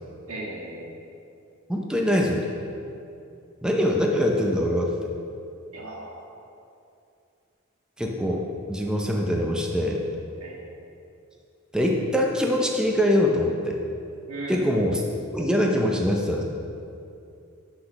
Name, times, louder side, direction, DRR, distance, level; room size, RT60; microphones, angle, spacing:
voice 1, 0.3-0.9 5.7-6.3 10.4-10.6 14.3-14.7, right 2 dB, 80° right, -3 dB, 1.9 m, -36 dB
voice 2, 1.7-2.5 3.6-4.9 8.0-10.0 11.7-13.8 14.5-15.0 15.3-16.4, left 1 dB, 5° right, 0 dB, 0.7 m, -23 dB
8.4 x 5.9 x 6.4 m, 2.6 s
head